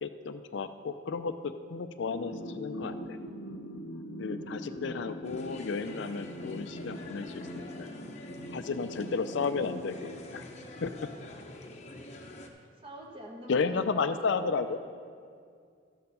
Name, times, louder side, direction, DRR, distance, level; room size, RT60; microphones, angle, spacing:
voice 1, 0.0-3.2 4.2-7.9 8.5-10.4 10.8-10.9 13.5-14.8, left 4 dB, 60° left, 10 dB, 0.4 m, -33 dB
sound 1, 2.1-11.1, equal, 85° left, 0.9 m, -42 dB
sound 2, 5.2-12.5, left 1 dB, 35° left, 0.8 m, -47 dB
voice 2, 12.0-12.4 12.8-14.3, equal, 25° right, 0 dB, 1.2 m, -46 dB
13.0 x 6.8 x 5.4 m, 2.3 s
head